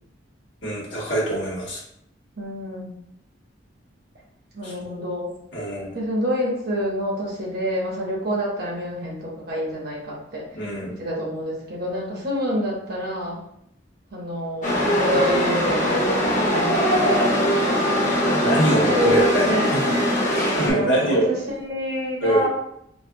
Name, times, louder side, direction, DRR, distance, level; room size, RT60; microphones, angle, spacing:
voice 1, 0.6-1.8 4.6-4.7 5.5-5.9 10.5-10.9 18.4-20.0 20.6-21.3 22.2-22.5, right 1 dB, 70° left, -5 dB, 1.3 m, -23 dB
voice 2, 2.4-3.0 4.5-5.3 5.9-10.4 10.9-13.4 14.1-16.8 18.7-19.7 20.7-22.5, equal, 55° right, -3 dB, 1.2 m, -27 dB
Chatter / Subway metro underground, 14.6-20.7, equal, 40° left, 0.9 m, -21 dB
4.6 x 2.6 x 2.3 m, 0.74 s
head